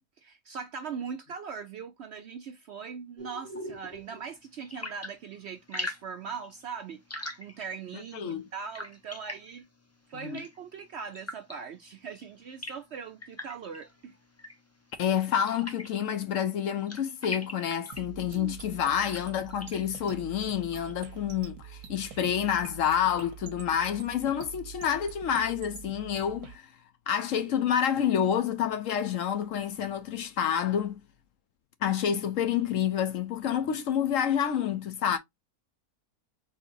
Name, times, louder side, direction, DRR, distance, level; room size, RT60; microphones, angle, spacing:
voice 1, 0.0-7.0 7.4-9.7 10.1-14.2 18.3-18.5, right 6 dB, 70° right, 0.6 m, -40 dB
sound 1, 3.2-21.4, left 1 dB, 20° left, 0.4 m, -44 dB
voice 2, 8.1-8.4 10.2-10.4 15.0-26.7 27.1-31.0 31.8-35.2, left 9 dB, 65° left, 0.9 m, -28 dB
sound 2, 17.9-26.6, right 9 dB, 85° right, 1.2 m, -45 dB
4.6 x 3.2 x 2.6 m
omnidirectional pair, 1.6 m